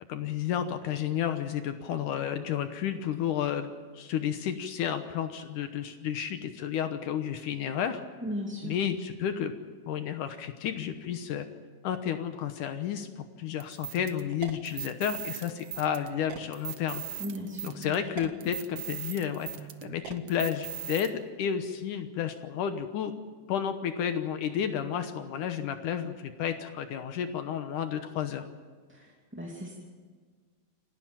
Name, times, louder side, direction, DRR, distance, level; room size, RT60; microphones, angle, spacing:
voice 1, 0.1-8.0 8.6-9.5 9.9-11.5 11.8-13.1 13.4-17.0 17.6-19.5 19.8-23.1 23.5-28.4, left 9 dB, 70° left, 8 dB, 2.4 m, -31 dB
voice 2, 8.2-8.7 17.2-18.0 28.9-29.1 29.3-29.7, equal, 5° right, -3 dB, 2.0 m, -36 dB
sound 1, 13.6-21.1, right 11 dB, 70° right, 1.4 m, -40 dB
27.5 x 12.0 x 9.0 m, 1.6 s
omnidirectional pair, 4.1 m